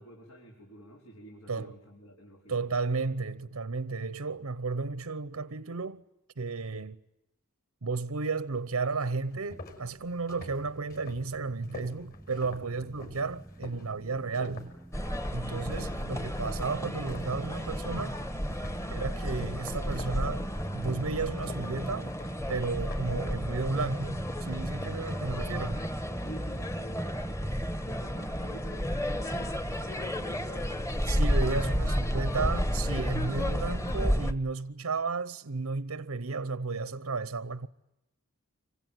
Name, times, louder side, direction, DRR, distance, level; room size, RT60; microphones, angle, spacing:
voice 1, 0.0-2.6 15.8-15.9 26.2-27.1 27.8-32.4, right 1 dB, 70° left, 4.8 m, -49 dB
voice 2, 2.5-6.0 6.4-7.0 7.8-14.7 15.3-18.2 18.9-20.4 20.7-22.1 22.5-25.9 31.1-37.7, right 4 dB, 85° right, 0.9 m, -33 dB
sound 1, 8.5-8.6 9.0-17.5 17.8-18.1 18.5-23.2, left 2 dB, 45° left, 6.1 m, -47 dB
sound 2, 9.6-27.8, right 1 dB, ahead, 1.1 m, -45 dB
sound 3, 14.9-34.3, equal, 15° left, 1.4 m, -32 dB
26.5 x 24.0 x 9.2 m
head